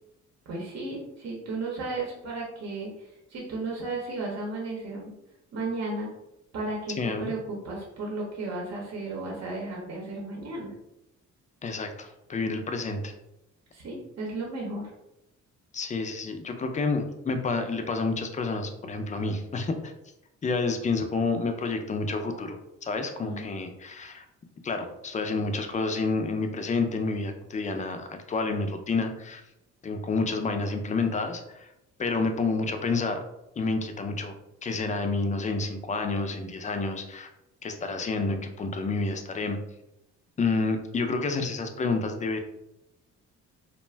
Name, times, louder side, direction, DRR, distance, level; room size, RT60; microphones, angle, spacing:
voice 1, 0.5-5.1 5.5-6.1 6.5-10.7 13.7-14.9 23.2-23.5, right 2 dB, 60° right, -2 dB, 0.8 m, -34 dB
voice 2, 7.0-7.3 11.6-13.1 15.7-19.9 20.4-24.2 24.6-29.4 29.8-31.7 32.0-33.2 33.6-34.3 34.6-37.3 37.6-39.6 40.4-42.4, left 3 dB, 25° left, 6 dB, 0.4 m, -29 dB
2.4 x 2.1 x 3.2 m, 0.87 s
cardioid pair, 90°, 30 cm